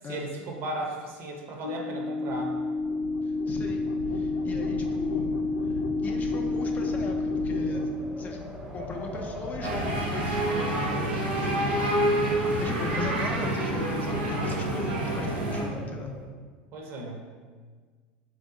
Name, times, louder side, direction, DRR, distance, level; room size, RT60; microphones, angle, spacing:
voice 1, 0.1-2.6 16.7-17.2, right 1 dB, 50° right, 1 dB, 0.8 m, -36 dB
sound 1, 1.6-7.9, left 3 dB, 80° left, 0.5 m, -29 dB
voice 2, 3.2-7.8 8.2-8.4 8.7-11.7 12.2-16.2, left 3 dB, 30° left, 2 dB, 0.5 m, -38 dB
Wind, 7.5-16.2, equal, 10° right, 0.6 m, -40 dB
sound 2, 9.6-15.7, right 1 dB, 80° right, 0.8 m, -27 dB
3.5 x 2.8 x 3.8 m, 1.5 s
hypercardioid pair, 90°, 5 cm